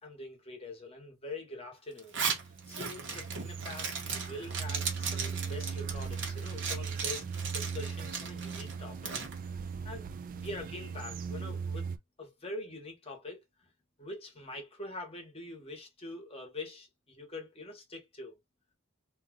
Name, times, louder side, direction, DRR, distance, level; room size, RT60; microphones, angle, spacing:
voice 1, 0.0-2.2 2.4-9.1 9.5-10.1 10.3-11.9 12.2-13.4 14.0-18.4, left 2 dB, 30° left, 1.0 m, -44 dB
Zipper (clothing), 2.0-9.3, right 5 dB, 60° right, 1.0 m, -37 dB
sound 1, 2.3-12.0, right 6 dB, 40° right, 0.3 m, -39 dB
2.7 x 2.3 x 3.7 m
head